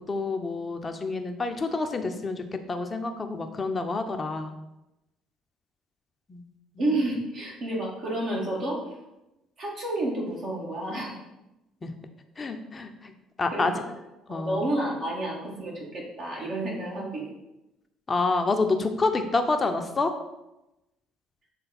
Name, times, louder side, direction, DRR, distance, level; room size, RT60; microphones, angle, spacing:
voice 1, 0.1-4.5 6.3-6.4 6.8-6.9 11.8-11.9 12.4-13.1 13.4-13.7 14.3-14.6 18.1-20.1, left 3 dB, 30° left, 6 dB, 0.8 m, -28 dB
voice 2, 6.8-9.0 9.6-11.2 13.5-13.8 14.3-17.2, right 1 dB, 50° right, -3 dB, 2.1 m, -30 dB
6.8 x 3.7 x 4.3 m, 0.94 s
figure-of-eight pair, 55°, 0 cm